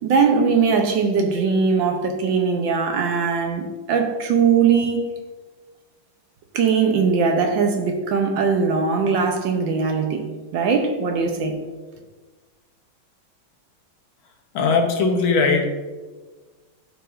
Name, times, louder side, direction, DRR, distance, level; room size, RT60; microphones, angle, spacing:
voice 1, 0.0-5.0 6.5-10.3 10.5-11.6, right 5 dB, 70° right, 4 dB, 1.5 m, -20 dB
voice 2, 14.5-15.6, left 4 dB, 70° left, 3 dB, 1.7 m, -19 dB
13.0 x 4.9 x 2.5 m, 1.3 s
omnidirectional pair, 2.3 m